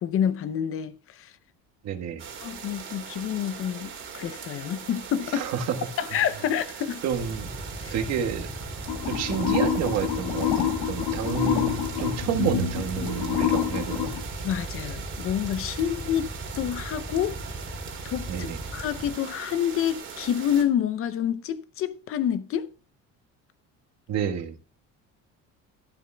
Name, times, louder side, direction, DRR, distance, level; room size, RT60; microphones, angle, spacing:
voice 1, 0.0-1.3 2.4-5.5 6.0-7.0 7.8-7.9 14.4-16.3 16.6-17.4 18.0-18.5 18.7-22.7, left 9 dB, 45° left, 0.6 m, -28 dB
voice 2, 1.8-2.2 5.3-5.7 7.0-7.5 7.9-8.5 9.1-14.1 18.3-18.6 24.1-24.7, right 8 dB, 55° right, 1.4 m, -29 dB
sound 1, 2.2-20.6, right 6 dB, 40° right, 2.5 m, -40 dB
Drill, 7.2-19.1, right 1 dB, 5° left, 4.5 m, -37 dB
sound 2, 8.9-14.2, left 9 dB, 80° left, 1.8 m, -27 dB
11.5 x 11.5 x 2.2 m
cardioid pair, 145°, 31 cm